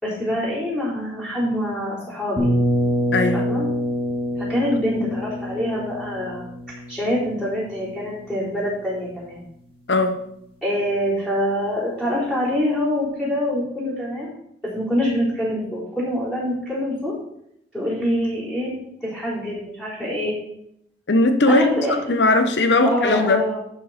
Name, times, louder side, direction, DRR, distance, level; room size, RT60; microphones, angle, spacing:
voice 1, 0.0-2.5 3.3-3.7 4.4-6.4 6.9-9.4 10.6-14.3 14.7-17.1 17.7-18.7 19.0-20.3 21.5-22.1 22.8-23.6, left 1 dB, 5° right, -10 dB, 4.1 m, -25 dB
sound 1, 2.4-8.1, equal, 30° right, 2.1 m, -25 dB
voice 2, 3.1-3.4 9.9-10.2 21.1-21.7 22.1-23.5, left 2 dB, 85° left, 8 dB, 1.0 m, -18 dB
11.5 x 5.6 x 5.8 m, 0.74 s
head